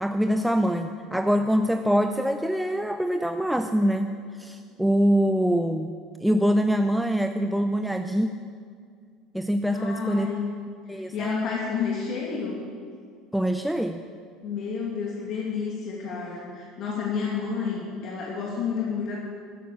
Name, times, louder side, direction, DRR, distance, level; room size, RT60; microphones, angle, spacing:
voice 1, 0.0-6.0 6.2-8.3 9.3-10.3 10.9-11.5 13.3-14.0, equal, ahead, 7 dB, 0.6 m, -24 dB
voice 2, 9.7-10.5 10.9-12.6 14.4-19.2, left 6 dB, 55° left, -3 dB, 2.4 m, -30 dB
13.5 x 10.0 x 6.8 m, 2.2 s
supercardioid pair, 95°, 0 cm